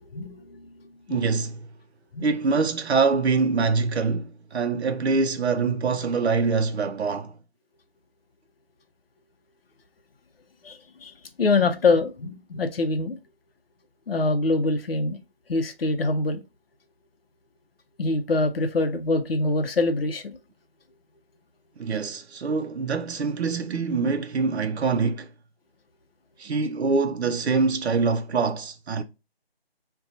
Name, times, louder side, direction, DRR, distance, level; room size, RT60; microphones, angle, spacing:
voice 1, 0.1-0.7 1.1-1.2 2.1-2.3 10.6-11.1 11.4-13.2 14.1-15.2 15.5-16.4 18.0-20.4, left 3 dB, 65° left, 0.6 m, -24 dB
voice 2, 1.1-1.7 2.2-7.3 21.8-25.3 26.4-29.0, right 4 dB, 85° right, 0.5 m, -24 dB
2.7 x 2.2 x 3.6 m
figure-of-eight pair, 180°, 32 cm